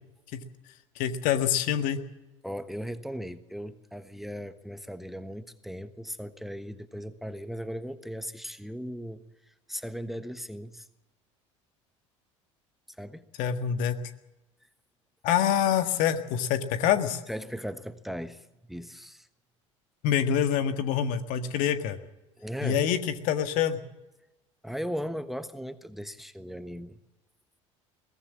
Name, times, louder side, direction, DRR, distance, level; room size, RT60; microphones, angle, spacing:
voice 1, 1.0-2.0 13.4-14.0 15.2-17.2 20.0-22.0 22.6-23.0 23.2-23.8, left 9 dB, 55° left, 9 dB, 1.7 m, -26 dB
voice 2, 2.4-10.9 13.0-13.2 17.3-19.3 22.4-22.8 24.6-27.0, equal, ahead, 12 dB, 1.3 m, -38 dB
22.5 x 18.0 x 7.3 m, 1.0 s
figure-of-eight pair, 65°, 16 cm